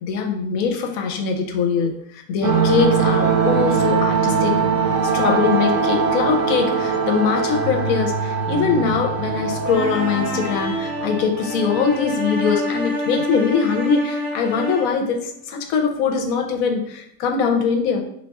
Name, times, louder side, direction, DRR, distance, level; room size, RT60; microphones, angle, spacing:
voice 1, 0.0-4.6 5.0-18.0, left 6 dB, 70° left, 3 dB, 1.0 m, -22 dB
sound 1, 2.4-12.3, right 5 dB, 65° right, 0.9 m, -22 dB
sound 2, 9.7-15.0, left 1 dB, 5° right, 0.4 m, -27 dB
3.6 x 2.3 x 4.0 m, 0.72 s
omnidirectional pair, 1.6 m